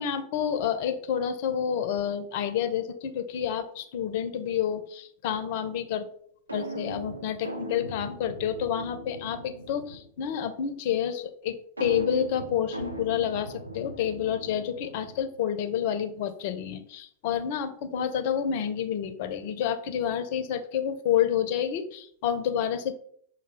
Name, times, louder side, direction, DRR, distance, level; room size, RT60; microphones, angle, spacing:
voice 1, 0.0-6.0 6.5-22.9, left 9 dB, 50° left, 9 dB, 0.5 m, -29 dB
sound 1, 6.5-10.2 11.8-15.4, right 1 dB, 80° right, 0.6 m, -39 dB
6.1 x 2.3 x 3.4 m, 0.62 s
figure-of-eight pair, 90°, 0 cm